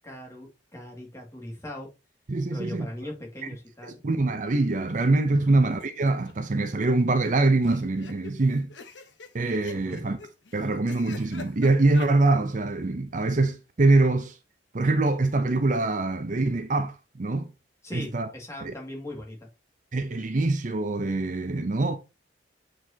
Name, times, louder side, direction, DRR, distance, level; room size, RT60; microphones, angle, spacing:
voice 1, 0.0-1.9 2.5-4.0 5.4-5.6 9.7-10.0 17.8-19.5, left 1 dB, 15° left, 2.2 m, -40 dB
voice 2, 2.3-2.9 4.0-8.7 9.3-10.2 10.5-14.4 14.7-17.5 17.9-18.3 18.6-18.7 19.9-22.0, right 2 dB, 45° right, 0.6 m, -24 dB
sound 1, 5.8-6.3 6.6-6.7 6.9-7.0 7.6-12.1, left 4 dB, 80° left, 1.1 m, -45 dB
8.2 x 4.7 x 2.9 m
head